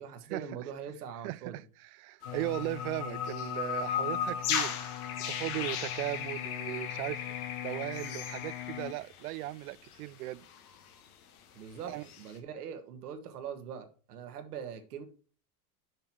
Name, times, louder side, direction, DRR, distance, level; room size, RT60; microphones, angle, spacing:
voice 1, 0.0-1.6 11.5-15.0, right 7 dB, 90° right, 1.8 m, -42 dB
voice 2, 1.2-4.8 5.3-7.2 7.6-10.4 11.9-12.1, right 19 dB, 70° right, 0.5 m, -37 dB
sound 1, 2.2-9.4 9.7-9.9 10.4-10.9 12.0-12.2, left 8 dB, 75° left, 1.8 m, -36 dB
sound 2, 2.3-8.9, left 14 dB, 50° left, 0.7 m, -42 dB
6.5 x 5.9 x 4.4 m
supercardioid pair, 115°, 45 cm